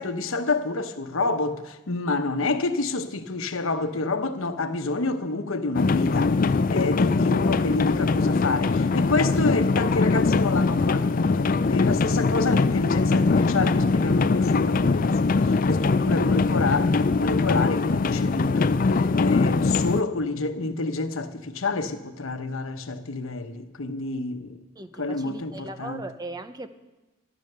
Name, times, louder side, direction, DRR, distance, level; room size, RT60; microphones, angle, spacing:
voice 1, 0.0-24.6 25.0-26.0, left 3 dB, 90° left, 1.0 m, -28 dB
sound 1, 5.7-20.0, left 4 dB, 45° left, 0.4 m, -22 dB
voice 2, 24.8-26.7, right 2 dB, 20° right, 0.7 m, -38 dB
14.0 x 11.0 x 6.8 m
head